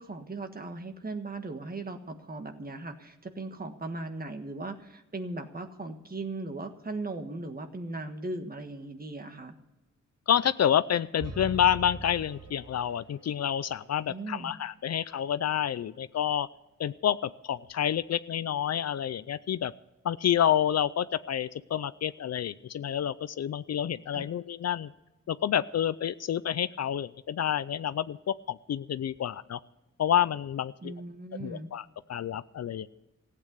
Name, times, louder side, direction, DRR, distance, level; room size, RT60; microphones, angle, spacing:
voice 1, 0.0-9.5 14.1-14.5 24.1-24.3 30.8-31.7, right 2 dB, 30° right, 6 dB, 1.5 m, -38 dB
voice 2, 10.3-16.5 16.8-19.7 20.0-24.9 25.3-29.6 30.0-30.9 31.4-32.9, left 10 dB, 60° left, 16 dB, 0.5 m, -28 dB
sound 1, 11.2-13.3, right 2 dB, 55° right, 2.3 m, -41 dB
15.5 x 8.7 x 8.1 m, 1.0 s
wide cardioid pair, 105°, 30 cm